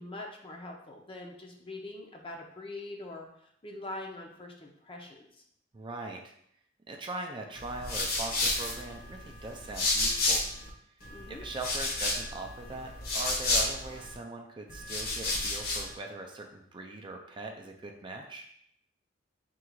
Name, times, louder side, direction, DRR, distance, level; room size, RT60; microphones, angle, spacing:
voice 1, 0.0-3.3 3.6-5.3 11.1-11.4, left 2 dB, 30° left, 1 dB, 0.6 m, -43 dB
voice 2, 5.7-6.3 6.9-10.4 11.3-18.5, right 2 dB, 25° right, 2 dB, 0.4 m, -41 dB
sound 1, 7.5-10.7 11.0-14.1 14.7-15.9, left 2 dB, 55° left, 1.0 m, -31 dB
3.7 x 2.4 x 4.5 m, 0.70 s
head